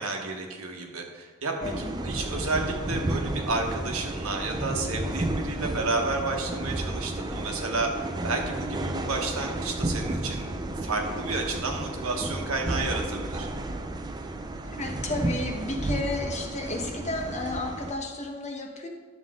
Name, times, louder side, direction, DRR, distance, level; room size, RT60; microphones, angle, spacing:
voice 1, 0.0-8.0 8.2-13.5, right 3 dB, 70° right, 2 dB, 1.4 m, -31 dB
voice 2, 1.6-2.0 14.6-18.9, left 2 dB, 30° left, 2 dB, 1.2 m, -32 dB
sound 1, 1.6-17.9, right 1 dB, 20° right, 0.5 m, -32 dB
11.0 x 7.1 x 3.7 m, 1.4 s
head